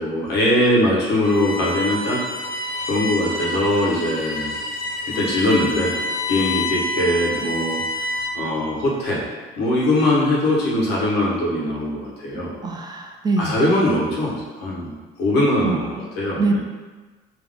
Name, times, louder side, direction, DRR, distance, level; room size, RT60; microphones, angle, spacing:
voice 1, 0.0-2.2 2.9-4.5 5.1-6.0 6.3-7.8 8.3-9.3 9.6-12.5 13.4-14.9 15.2-16.6, left 1 dB, 85° left, -5 dB, 1.3 m, -21 dB
Bowed string instrument, 1.2-8.5, left 1 dB, 60° left, 1.3 m, -28 dB
voice 2, 12.6-13.6 15.6-16.0 16.4-16.6, right 3 dB, 25° right, 2 dB, 0.4 m, -23 dB
3.7 x 2.9 x 3.7 m, 1.3 s
cardioid pair, 110°, 17 cm